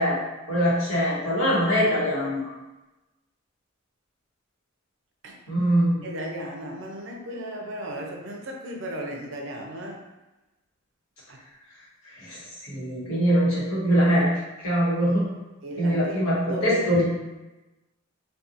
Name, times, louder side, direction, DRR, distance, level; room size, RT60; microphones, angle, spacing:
voice 1, 0.0-2.5 5.5-6.0 12.2-14.3 14.6-15.2 15.8-17.0, equal, 90° left, -7 dB, 1.0 m, -23 dB
voice 2, 6.0-10.0 11.3-11.4 15.6-16.2 16.5-16.8, equal, 60° right, 0 dB, 0.5 m, -35 dB
2.7 x 2.2 x 2.5 m, 1.0 s
head